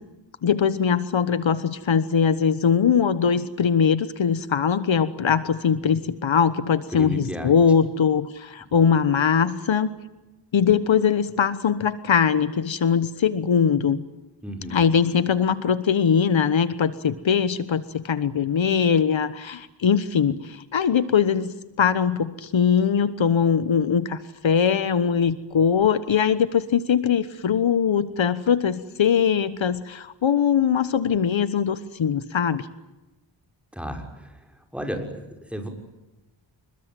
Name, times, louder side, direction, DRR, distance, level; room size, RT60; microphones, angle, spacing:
voice 1, 0.4-10.0 10.5-14.0 14.7-32.7, left 7 dB, 70° left, 14 dB, 1.3 m, -21 dB
voice 2, 6.9-7.5 8.7-8.8 14.4-14.8 33.7-34.4 34.7-35.7, equal, ahead, 4 dB, 6.2 m, -33 dB
27.5 x 22.0 x 9.2 m, 1.0 s
wide cardioid pair, 85°, 47 cm